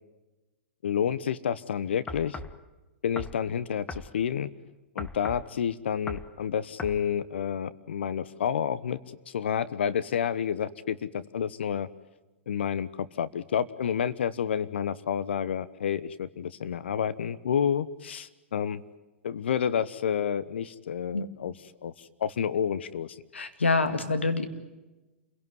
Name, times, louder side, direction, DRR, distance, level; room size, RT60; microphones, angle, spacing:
voice 1, 0.8-2.4 3.0-4.5 4.9-9.0 9.3-11.9 12.5-18.8 19.2-21.5 21.8-23.2, left 8 dB, 75° left, 16 dB, 1.0 m, -29 dB
sound 1, 2.1-2.6 3.2-3.4 3.9-4.1 5.0-5.5 6.1-6.3 6.8-7.0, left 3 dB, 20° left, 1.4 m, -38 dB
voice 2, 23.3-24.5, left 3 dB, 90° left, 8 dB, 2.2 m, -26 dB
28.5 x 17.5 x 9.4 m, 1.1 s
hypercardioid pair, 105°, 6 cm